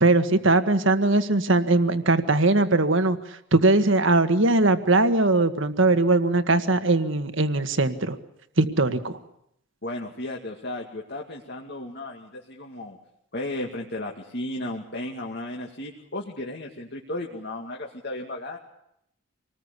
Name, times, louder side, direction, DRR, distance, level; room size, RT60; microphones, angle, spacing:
voice 1, 0.0-8.2 8.6-9.2, right 2 dB, 60° right, 9 dB, 1.8 m, -20 dB
voice 2, 9.8-13.0 13.3-18.6, left 1 dB, 50° left, 0 dB, 2.4 m, -34 dB
26.5 x 20.0 x 8.4 m, 0.76 s
head